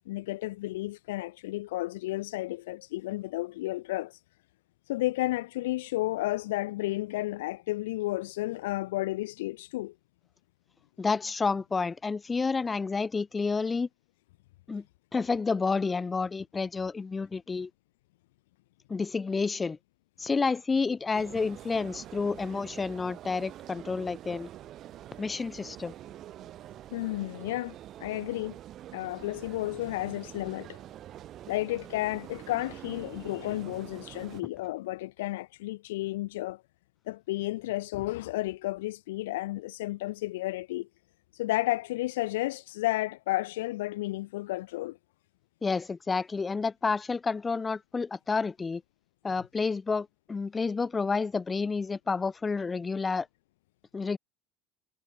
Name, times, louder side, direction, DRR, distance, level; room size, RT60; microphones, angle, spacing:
voice 1, 0.0-4.2 4.9-9.9 26.9-27.7 28.0-28.6 28.9-30.8 31.5-36.6 37.1-40.9 41.3-45.0, left 18 dB, 65° left, 0.6 m, -32 dB
voice 2, 11.0-13.9 14.7-14.8 15.1-17.7 18.9-19.8 20.2-24.5 25.2-25.9 45.6-48.8 49.2-53.3 53.9-54.2, left 4 dB, 20° left, 2.4 m, -30 dB
sound 1, 21.1-34.4, right 12 dB, 45° right, 3.8 m, -46 dB
figure-of-eight pair, 70°, 0 cm